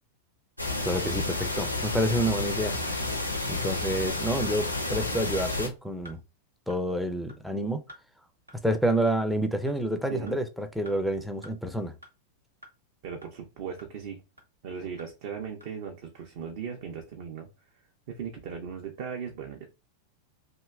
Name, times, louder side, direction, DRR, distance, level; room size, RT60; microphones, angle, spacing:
sound 1, 0.6-5.7, left 2 dB, 90° left, 0.5 m, -30 dB
voice 1, 0.8-2.8 3.5-6.2 6.7-7.8 8.6-11.9, right 1 dB, ahead, 0.4 m, -28 dB
sound 2, 5.5-5.6 6.1-6.2 6.7-6.8 7.3-7.4 7.9-8.0 8.5-8.6 9.1-9.2 9.7-9.8 10.3-10.4 10.9-11.0 11.4-11.5 12.0-12.1 12.6-12.7 13.2-13.3 13.8-13.9 14.4-14.5 15.0-15.1 15.6-15.7, equal, 85° right, 0.8 m, -49 dB
voice 2, 13.0-14.2 14.6-17.5 18.1-19.6, right 7 dB, 50° right, 0.6 m, -38 dB
2.9 x 2.7 x 2.3 m
figure-of-eight pair, 90°, 0 cm